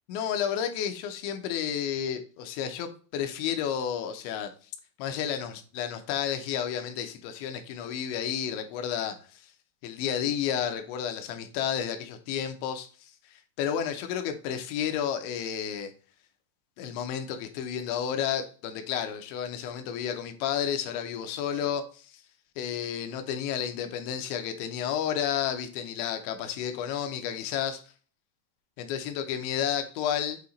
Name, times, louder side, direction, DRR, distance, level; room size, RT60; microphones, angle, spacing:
voice 1, 0.1-4.5 5.0-9.5 9.8-15.9 16.8-22.2 22.6-27.8 28.8-30.4, left 9 dB, 90° left, 3.1 m, -31 dB
8.4 x 2.8 x 3.9 m
omnidirectional pair, 5.1 m